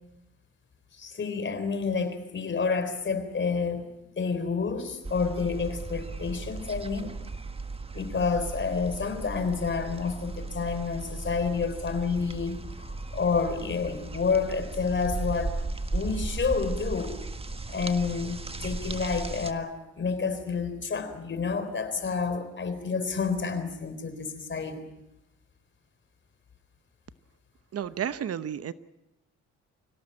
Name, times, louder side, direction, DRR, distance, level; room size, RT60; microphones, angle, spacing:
voice 1, 1.0-3.9 4.2-7.2 7.9-15.5 15.9-17.2 17.7-24.8, left 5 dB, 40° left, 10 dB, 3.9 m, -29 dB
sound 1, 5.0-19.5, right 3 dB, 20° right, 1.6 m, -36 dB
voice 2, 27.7-28.7, right 9 dB, 50° right, 14 dB, 0.9 m, -32 dB
25.0 x 17.5 x 8.8 m, 0.93 s
cardioid pair, 90°, 30 cm